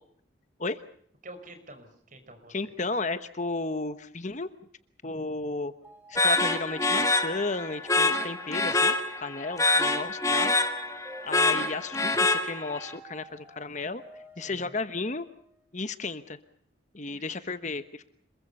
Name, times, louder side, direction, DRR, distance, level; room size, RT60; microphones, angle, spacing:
voice 1, 1.2-2.7 14.4-14.7 17.1-17.5, right 1 dB, 40° right, 8 dB, 5.5 m, -48 dB
voice 2, 2.5-4.5 5.0-5.7 6.1-10.5 11.0-14.0 14.4-15.2 15.7-16.4 16.9-18.1, left 3 dB, 40° left, 11 dB, 1.1 m, -33 dB
sound 1, 5.8-15.6, right 1 dB, 10° right, 4.9 m, -52 dB
sound 2, 6.1-12.9, left 2 dB, 15° left, 1.9 m, -26 dB
27.5 x 22.5 x 5.5 m, 0.65 s
head